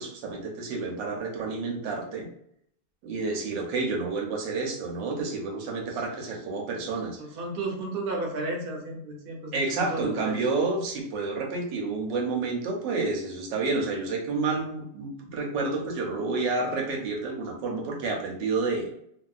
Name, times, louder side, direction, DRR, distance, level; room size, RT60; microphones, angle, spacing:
voice 1, 0.0-2.3 3.0-7.2 9.5-18.9, right 3 dB, 90° right, 0 dB, 1.4 m, -29 dB
voice 2, 7.2-10.4, right 2 dB, 60° right, 0 dB, 0.5 m, -33 dB
3.0 x 2.6 x 2.4 m, 0.70 s
omnidirectional pair, 1.9 m